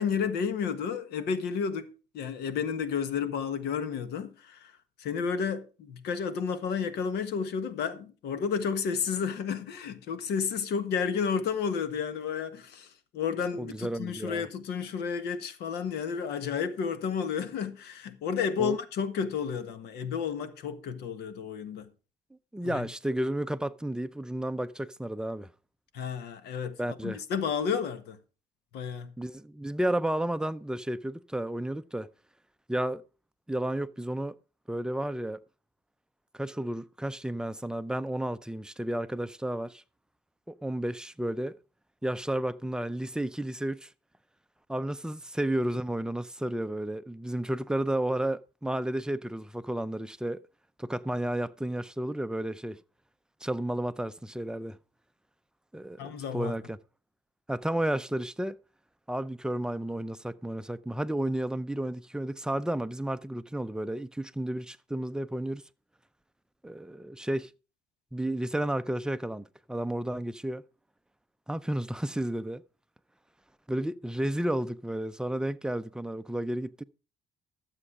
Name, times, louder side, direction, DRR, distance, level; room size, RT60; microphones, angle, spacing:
voice 1, 0.0-1.9 2.1-4.7 5.0-21.9 22.6-22.9 25.9-26.7 27.0-28.2 28.7-29.1 56.0-56.5, left 6 dB, 75° left, 1.5 m, -31 dB
voice 2, 13.5-14.4 18.6-18.8 22.5-25.5 26.8-27.2 29.2-32.1 32.7-33.0 33.5-34.3 34.7-35.4 36.3-39.8 40.5-41.6 42.0-43.9 44.7-50.4 50.8-52.8 53.4-54.8 55.7-56.8 57.5-58.6 59.1-65.6 66.6-67.5 68.1-70.6 71.5-72.6 73.7-76.8, right 1 dB, 5° right, 0.5 m, -32 dB
12.5 x 7.4 x 4.8 m
cardioid pair, 110°, 17 cm